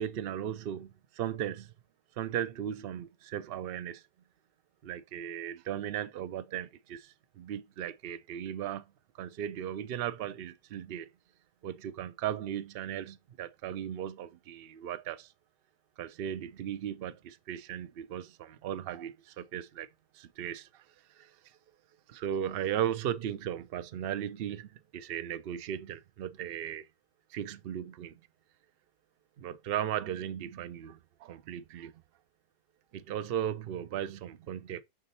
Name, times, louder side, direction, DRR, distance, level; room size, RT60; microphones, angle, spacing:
voice 1, 0.0-1.7 2.2-4.0 4.8-8.9 9.2-11.1 11.6-15.3 16.0-19.9 20.1-20.8 21.1-21.4 22.1-26.9 27.3-28.1 29.4-31.9 32.9-34.8, right 10 dB, 85° right, 0.5 m, -37 dB
6.7 x 4.9 x 4.2 m
omnidirectional pair, 1.7 m